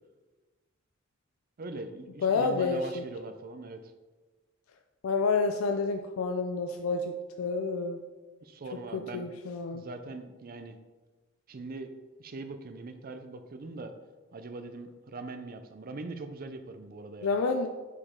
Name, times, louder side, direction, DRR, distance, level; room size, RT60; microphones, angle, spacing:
voice 1, 1.6-3.9 8.4-9.3 9.7-10.8 11.5-11.9 12.2-13.9 14.3-17.3, right 3 dB, 45° right, 7 dB, 0.5 m, -41 dB
voice 2, 2.2-3.0 5.0-8.0 8.9-9.8 17.2-17.7, left 4 dB, 90° left, 5 dB, 0.4 m, -29 dB
6.4 x 4.9 x 3.7 m, 1.3 s
head